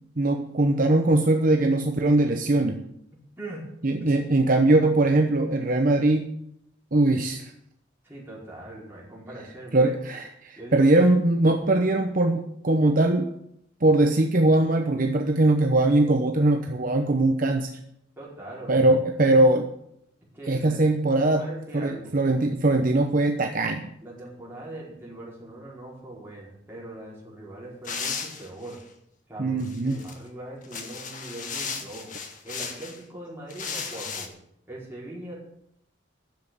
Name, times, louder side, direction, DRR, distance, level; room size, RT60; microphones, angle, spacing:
voice 1, 0.2-2.8 3.8-6.3 6.9-7.5 9.7-13.3 13.8-17.8 18.7-19.7 20.5-21.4 21.7-23.9 29.4-30.0, right 2 dB, 50° right, 4 dB, 0.9 m, -21 dB
voice 2, 3.1-3.7 4.0-4.2 8.0-10.2 10.6-10.9 18.2-18.9 20.3-20.8 21.3-22.1 24.0-28.8 29.3-34.3 34.7-35.3, right 1 dB, 15° right, -5 dB, 5.0 m, -41 dB
sound 1, 27.8-28.8 29.6-30.1 30.6-33.0 33.5-34.3, left 5 dB, 45° left, 1.6 m, -35 dB
10.5 x 7.6 x 9.2 m, 0.74 s
head